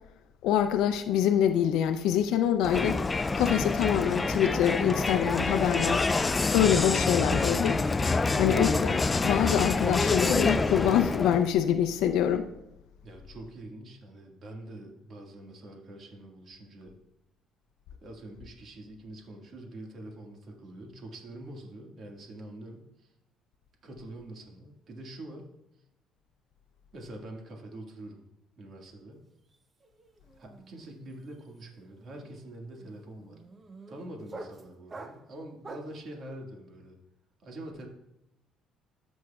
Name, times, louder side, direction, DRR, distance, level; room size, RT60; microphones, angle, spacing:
voice 1, 0.4-3.0 3.4-6.0 6.5-7.8 8.4-12.5, left 9 dB, 85° left, 7 dB, 0.5 m, -25 dB
Crowd, 2.6-11.5, left 3 dB, 20° left, 0.3 m, -27 dB
voice 2, 13.0-17.0 18.0-23.1 23.8-25.5 26.9-28.2 28.6-29.2 30.4-33.4 33.9-37.0 37.4-37.9, right 1 dB, 50° right, 1 dB, 1.7 m, -45 dB
sound 1, 29.2-29.6 29.8-36.0, right 3 dB, 25° right, 0.6 m, -47 dB
14.0 x 6.2 x 2.3 m, 0.87 s
cardioid pair, 120°, 0 cm